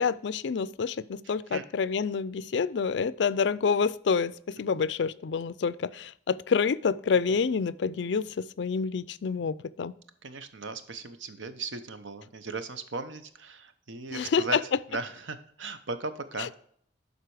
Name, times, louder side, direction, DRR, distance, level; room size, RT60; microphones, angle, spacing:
voice 1, 0.0-9.9 14.1-14.6 16.4-16.5, left 5 dB, 65° left, 18 dB, 0.4 m, -28 dB
voice 2, 1.2-1.6 10.2-14.6 14.9-16.5, right 3 dB, 85° right, 10 dB, 0.9 m, -37 dB
11.5 x 4.1 x 4.8 m, 0.63 s
head